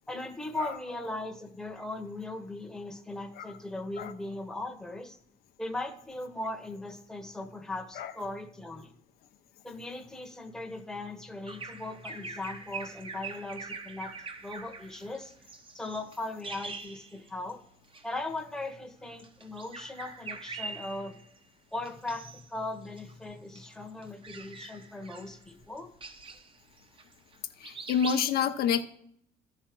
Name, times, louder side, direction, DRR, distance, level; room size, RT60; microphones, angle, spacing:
voice 1, 0.1-5.2 5.6-8.9 9.6-14.1 14.4-15.3 15.7-17.6 18.0-21.2 21.7-25.9, left 2 dB, 5° left, 5 dB, 1.0 m, -38 dB
Bird vocalization bird call bird song, 11.5-17.5 17.8-18.1 19.1-21.4 21.9-22.5 22.8-27.4 27.6-28.3, right 4 dB, 30° right, 0.9 m, -43 dB
voice 2, 27.6-28.8, left 7 dB, 65° left, 7 dB, 0.7 m, -28 dB
13.0 x 4.8 x 6.0 m, 0.71 s
cardioid pair, 110°, 17 cm